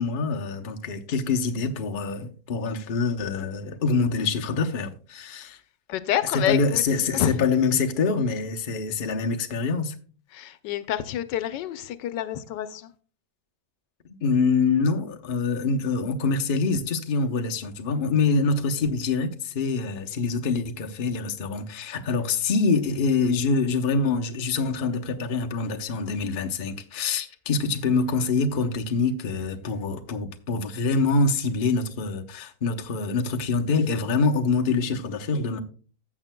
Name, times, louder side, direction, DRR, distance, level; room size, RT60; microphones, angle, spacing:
voice 1, 0.0-5.6 6.3-10.0 14.2-35.6, left 4 dB, 40° left, 0.8 m, -25 dB
voice 2, 5.9-6.8 7.1-7.4 10.3-12.9, left 11 dB, 85° left, 1.3 m, -28 dB
15.0 x 7.3 x 2.2 m
omnidirectional pair, 1.9 m